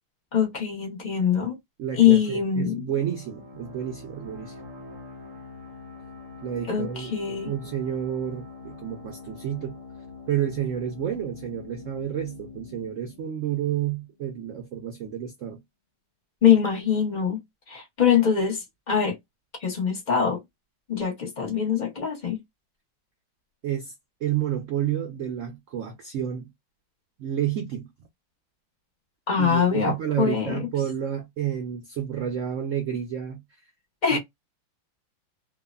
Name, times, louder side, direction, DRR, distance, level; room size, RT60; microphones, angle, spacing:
voice 1, 0.3-1.6 2.0-2.9 6.7-7.5 16.4-17.4 17.7-19.2 19.6-20.4 20.9-22.4 29.3-30.6 34.0-34.2, left 8 dB, 70° left, 0.4 m, -23 dB
voice 2, 1.8-4.6 6.4-9.8 10.3-15.6 23.6-23.9 24.2-26.5 27.2-27.9 29.4-33.4 34.1-34.2, right 10 dB, 90° right, 0.6 m, -30 dB
sound 1, 3.0-14.4, left 4 dB, 50° right, 1.1 m, -44 dB
3.1 x 2.1 x 2.3 m
omnidirectional pair, 2.0 m